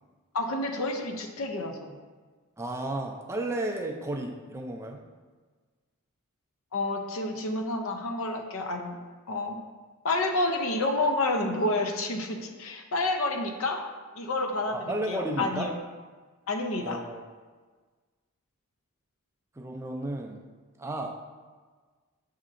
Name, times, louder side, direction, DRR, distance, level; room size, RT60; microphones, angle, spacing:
voice 1, 0.3-2.0 6.7-9.0 9.3-9.6 10.0-13.8 14.2-14.8 15.1-15.8 16.5-17.0, left 2 dB, 65° left, 4 dB, 0.5 m, -29 dB
voice 2, 2.6-5.0 14.7-15.7 16.8-17.2 19.6-20.4 20.8-21.1, right 1 dB, 10° right, 2 dB, 0.3 m, -33 dB
7.2 x 2.8 x 2.5 m, 1.4 s
head